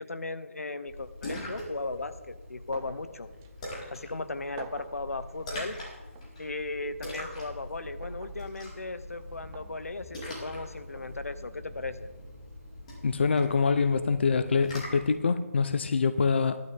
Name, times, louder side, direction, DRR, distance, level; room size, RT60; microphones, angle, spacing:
voice 1, 0.0-3.3 3.9-5.8 6.4-12.1, left 3 dB, 80° left, 1.0 m, -37 dB
Splash splatter, 0.9-15.2, left 1 dB, 30° left, 4.3 m, -43 dB
sound 1, 2.7-3.1 3.4-3.5 4.6-5.0 6.1-6.3 8.0-8.4 9.5-9.7 11.0-11.1, right 7 dB, 15° right, 0.5 m, -46 dB
voice 2, 13.0-16.6, left 5 dB, 50° left, 0.7 m, -25 dB
16.0 x 12.0 x 3.6 m
figure-of-eight pair, 165°, 8 cm